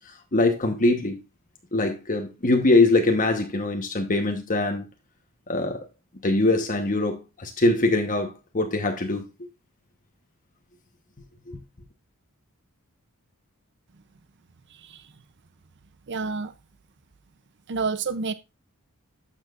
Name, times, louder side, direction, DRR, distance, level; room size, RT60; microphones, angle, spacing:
voice 1, 0.1-1.2 1.7-4.8 5.5-5.8 6.2-9.2 11.5-11.6, left 2 dB, 40° left, 1.1 m, -23 dB
voice 2, 14.7-15.0 16.1-16.5 17.7-18.3, right 4 dB, 55° right, 0.6 m, -29 dB
12.0 x 7.4 x 2.5 m
head